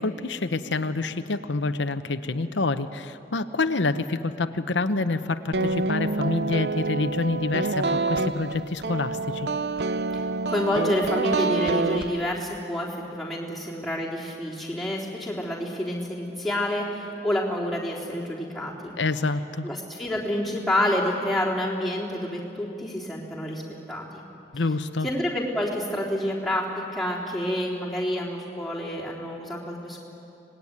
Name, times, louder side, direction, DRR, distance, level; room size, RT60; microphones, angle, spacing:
voice 1, 0.0-9.5 19.0-19.7 24.5-25.1, left 3 dB, 90° left, 9 dB, 0.9 m, -27 dB
sound 1, 5.5-12.6, right 3 dB, 70° right, 0.6 m, -27 dB
voice 2, 10.1-18.9 19.6-23.6 23.9-24.2 25.0-30.1, left 1 dB, ahead, -3 dB, 3.7 m, -28 dB
25.0 x 19.5 x 9.6 m, 3.0 s
head